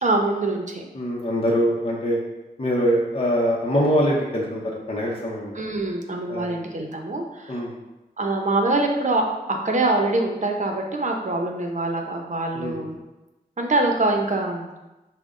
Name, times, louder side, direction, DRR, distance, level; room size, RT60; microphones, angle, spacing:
voice 1, 0.0-0.8 5.5-7.6 8.2-13.0 13.6-14.7, right 2 dB, 45° right, 2 dB, 0.8 m, -24 dB
voice 2, 0.9-2.2 2.6-5.6 6.3-6.5 7.5-7.7 12.5-12.7, equal, 35° left, -3 dB, 0.8 m, -23 dB
5.9 x 2.2 x 3.7 m, 1.0 s
cardioid pair, 55°, 17 cm